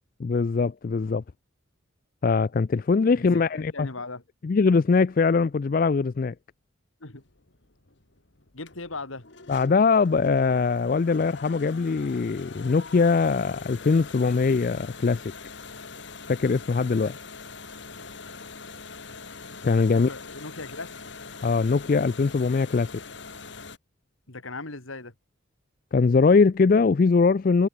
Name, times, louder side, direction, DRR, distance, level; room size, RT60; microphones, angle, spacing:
voice 1, 0.2-1.2 2.2-3.9 4.4-6.3 9.5-15.2 16.3-17.1 19.6-20.1 21.4-23.0 25.9-27.7, left 4 dB, 45° left, 0.4 m, -22 dB
voice 2, 3.5-4.2 7.0-7.2 8.5-9.3 19.9-20.9 24.3-25.1, left 3 dB, 85° left, 2.7 m, -38 dB
sound 1, 7.2-23.8, left 4 dB, 60° left, 2.1 m, -43 dB
head